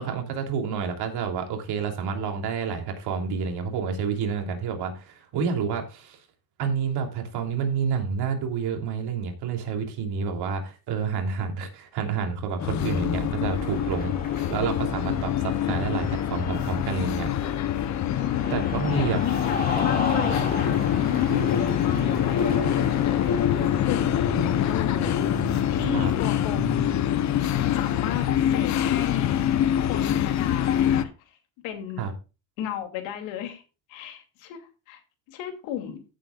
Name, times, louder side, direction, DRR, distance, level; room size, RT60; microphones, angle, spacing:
voice 1, 0.0-6.2 6.6-14.1 14.5-17.3 18.5-19.2 25.9-26.1 32.0-32.1, right 6 dB, 55° right, 4 dB, 3.2 m, -29 dB
sound 1, 12.6-31.0, left 10 dB, 40° left, 0.8 m, -25 dB
Cheering, 13.5-26.9, left 3 dB, 20° left, 3.3 m, -36 dB
sound 2, 17.6-27.6, right 4 dB, ahead, 2.5 m, -40 dB
voice 2, 18.9-23.0 23.3-25.2 25.7-29.4 29.7-31.1 31.6-32.1 32.6-33.6 33.9-35.0 35.3-36.0, left 9 dB, 80° left, 6 dB, 2.8 m, -34 dB
15.0 x 7.7 x 2.4 m, 0.31 s
cardioid pair, 160°, 46 cm